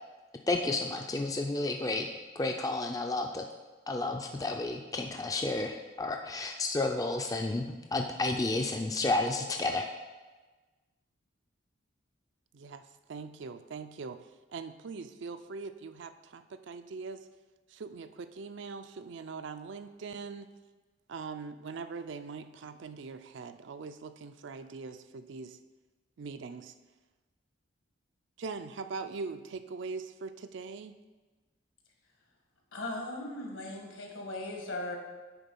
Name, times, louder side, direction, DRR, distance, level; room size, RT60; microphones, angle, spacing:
voice 1, 0.5-2.1 2.4-3.4 3.9-9.9, left 2 dB, 15° left, 3 dB, 0.3 m, -31 dB
voice 2, 12.5-14.2 14.5-17.2 17.7-20.5 21.1-25.6 26.2-26.7 28.4-31.0, right 4 dB, 65° right, 10 dB, 0.4 m, -42 dB
voice 3, 32.7-34.9, left 2 dB, 75° left, 1 dB, 1.6 m, -38 dB
9.0 x 3.7 x 5.4 m, 1.3 s
head